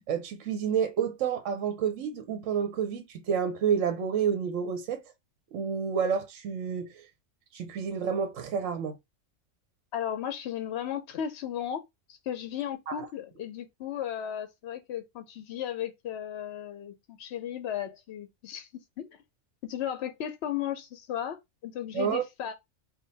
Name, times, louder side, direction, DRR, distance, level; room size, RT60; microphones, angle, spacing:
voice 1, 0.1-5.0 5.5-7.1 7.5-9.0 12.9-13.1 21.9-22.2, right 7 dB, 75° right, 1.0 m, -29 dB
voice 2, 9.9-11.8 12.1-18.7 19.0-19.2 19.6-22.5, left 10 dB, 65° left, 0.7 m, -35 dB
3.6 x 2.2 x 3.9 m
omnidirectional pair, 1.3 m